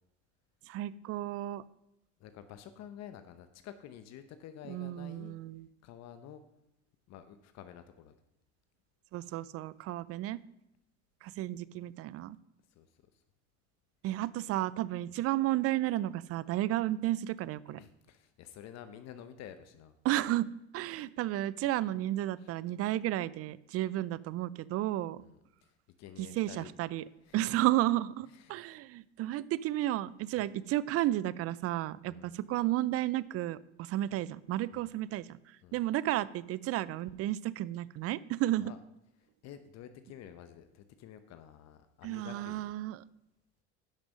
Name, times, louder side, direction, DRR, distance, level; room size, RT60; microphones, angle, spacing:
voice 1, 0.7-1.6 4.7-5.7 9.1-10.4 11.2-12.4 14.0-17.8 20.0-20.5 20.7-25.2 26.2-27.0 27.3-38.7 42.0-43.0, right 14 dB, 45° right, 19 dB, 0.5 m, -32 dB
voice 2, 2.2-5.4 5.8-6.4 7.1-8.1 9.2-9.3 12.7-12.9 17.8-19.9 22.4-22.5 25.2-26.7 27.2-27.6 28.3-28.7 30.4-30.5 32.1-32.3 34.7-34.9 35.6-35.8 38.6-38.8 39.4-42.7, left 10 dB, 55° left, 10 dB, 0.9 m, -50 dB
10.5 x 6.1 x 5.3 m, 0.86 s
supercardioid pair, 85°, 32 cm